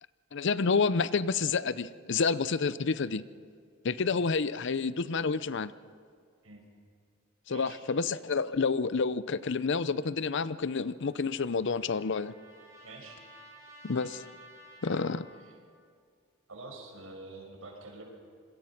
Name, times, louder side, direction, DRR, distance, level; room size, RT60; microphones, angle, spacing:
voice 1, 0.3-3.2 3.8-5.7 7.5-12.3 13.8-14.2 14.8-15.3, left 4 dB, 60° left, 16 dB, 0.6 m, -29 dB
Trumpet, 11.0-15.8, right 1 dB, 15° right, 7.1 m, -54 dB
voice 2, 12.8-13.2 15.4-15.5 16.5-18.0, right 2 dB, 80° right, 1 dB, 5.8 m, -46 dB
27.0 x 22.5 x 5.9 m, 2.1 s
head